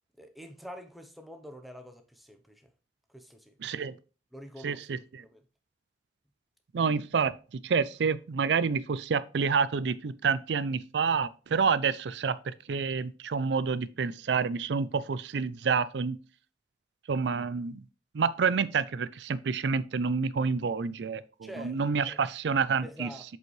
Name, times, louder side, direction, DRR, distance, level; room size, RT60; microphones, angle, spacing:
voice 1, 0.2-2.7 3.1-3.6 4.3-4.9 5.1-5.4 21.4-21.8 22.1-22.2 22.8-23.2, equal, ahead, 0.8 m, -46 dB
voice 2, 3.6-3.9 4.6-5.0 6.7-7.3 7.6-16.2 17.1-17.8 18.1-23.1, right 5 dB, 85° right, 0.4 m, -28 dB
7.9 x 5.2 x 3.2 m
head